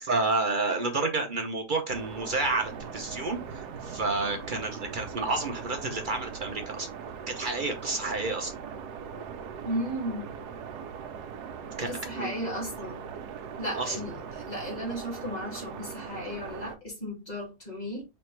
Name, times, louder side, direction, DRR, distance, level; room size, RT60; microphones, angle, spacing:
voice 1, 0.0-6.9 7.3-8.5 11.8-11.9 12.1-12.4 13.8-14.0, right 3 dB, 50° right, 0.6 m, -30 dB
sound 1, 1.9-16.8, right 6 dB, 70° right, 1.2 m, -40 dB
voice 2, 9.6-10.3 11.9-13.0 13.6-18.0, equal, 25° left, 2.2 m, -35 dB
5.1 x 3.2 x 3.1 m
omnidirectional pair, 1.9 m